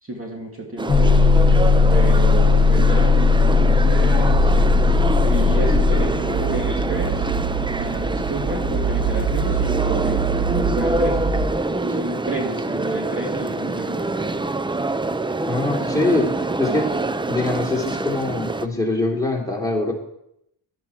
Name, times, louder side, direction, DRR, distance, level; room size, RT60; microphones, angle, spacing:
voice 1, 0.0-1.3 1.9-4.5 5.2-7.3 7.7-14.4 15.8-16.0, right 2 dB, 25° right, 0 dB, 2.6 m, -30 dB
sound 1, 0.8-18.7, right 2 dB, 10° right, 0.5 m, -26 dB
sound 2, 0.9-6.0, left 4 dB, 30° left, 2.3 m, -16 dB
sound 3, 4.3-11.5, right 5 dB, 60° right, 1.6 m, -25 dB
voice 2, 15.4-16.3 16.6-16.9 17.3-19.9, left 2 dB, 5° left, -2 dB, 3.3 m, -23 dB
12.0 x 11.5 x 4.5 m, 0.79 s
cardioid pair, 75°, 49 cm